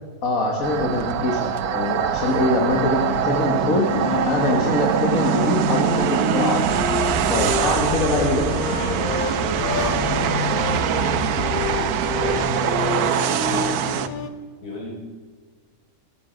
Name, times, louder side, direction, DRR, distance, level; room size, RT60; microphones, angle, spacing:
voice 1, 0.2-3.9 4.3-6.6 7.3-8.4, left 2 dB, 65° left, 0 dB, 2.0 m, -23 dB
sound 1, 0.6-14.1, right 10 dB, 85° right, 1.2 m, -23 dB
sound 2, 2.4-14.3, left 6 dB, 45° left, 0.7 m, -29 dB
sound 3, 6.5-12.4, left 1 dB, 70° right, 4.6 m, -32 dB
voice 2, 8.2-14.1 14.6-14.9, left 1 dB, 90° left, -1 dB, 4.1 m, -35 dB
14.5 x 13.5 x 5.1 m, 1.5 s
omnidirectional pair, 1.6 m